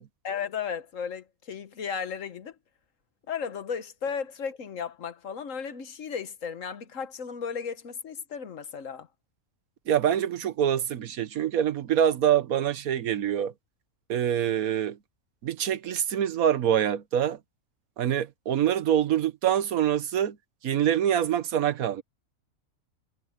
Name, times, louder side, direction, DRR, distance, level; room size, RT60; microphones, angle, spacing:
voice 1, 0.2-2.5 3.3-9.1, left 6 dB, 65° left, 1.5 m, -35 dB
voice 2, 9.9-13.5 14.1-15.0 15.4-17.4 18.0-20.4 20.6-22.0, right 10 dB, 90° right, 1.4 m, -25 dB
omnidirectional pair, 1.4 m